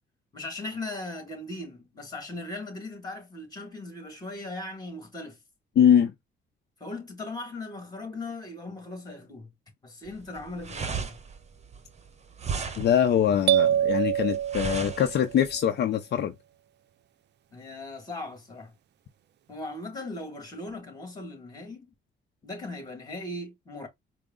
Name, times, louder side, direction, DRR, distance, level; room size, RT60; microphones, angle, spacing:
voice 1, 0.3-5.4 6.8-9.5 9.8-11.2 17.5-18.7 19.5-21.9 22.4-23.9, left 2 dB, 20° left, 2.2 m, -38 dB
voice 2, 5.8-6.1 12.8-16.3, left 9 dB, 60° left, 0.6 m, -23 dB
sound 1, 10.1-15.6, right 5 dB, 35° right, 0.8 m, -36 dB
sound 2, 13.5-15.4, right 10 dB, 60° right, 0.5 m, -25 dB
4.6 x 2.0 x 3.8 m
cardioid pair, 90°, 20 cm